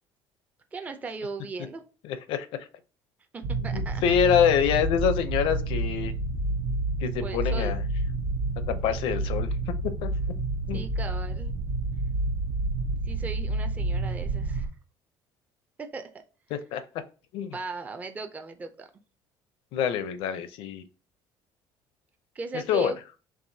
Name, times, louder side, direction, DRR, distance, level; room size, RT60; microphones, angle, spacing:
voice 1, 0.7-1.8 3.3-4.0 7.2-7.7 10.7-11.5 13.0-14.7 15.8-16.1 17.4-18.9 22.4-23.0, right 3 dB, 15° right, 6 dB, 0.4 m, -37 dB
voice 2, 2.0-2.5 3.7-6.1 7.0-7.8 8.6-9.5 10.0-10.1 10.7-10.8 16.5-16.8 17.3-17.5 19.7-20.8 22.7-22.9, left 8 dB, 70° left, 11 dB, 0.5 m, -26 dB
sound 1, 3.4-14.7, right 2 dB, 85° right, 0.6 m, -29 dB
4.6 x 3.0 x 2.7 m, 0.35 s
cardioid pair, 140°, 9 cm